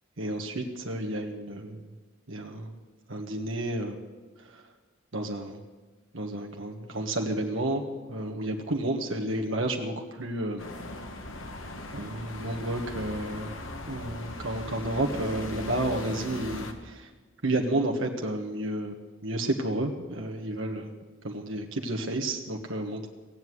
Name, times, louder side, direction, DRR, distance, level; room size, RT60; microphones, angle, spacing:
voice 1, 0.2-1.9 2.3-2.7 3.1-4.0 4.4-4.6 5.1-5.6 6.1-7.8 8.1-10.6 11.9-13.5 13.9-17.1 17.4-20.9 21.2-23.1, right 1 dB, 70° right, 2 dB, 1.4 m, -31 dB
sound 1, 10.6-16.7, left 1 dB, 70° left, 1.7 m, -39 dB
17.5 x 8.0 x 9.5 m, 1.3 s
head